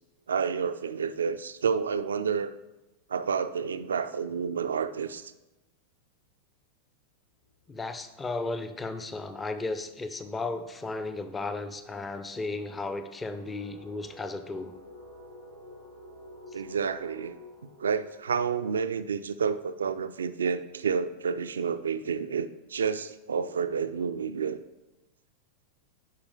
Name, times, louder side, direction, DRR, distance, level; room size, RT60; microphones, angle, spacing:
voice 1, 0.3-2.5 3.1-5.3 16.5-17.4 17.8-24.6, right 6 dB, 70° right, 12 dB, 0.4 m, -29 dB
sound 1, 7.4-7.7 8.0-19.5, left 1 dB, 75° left, 2.7 m, -52 dB
voice 2, 7.7-14.8, left 3 dB, 15° left, 10 dB, 0.6 m, -35 dB
10.0 x 4.9 x 3.6 m, 1.0 s
figure-of-eight pair, 90°, 0 cm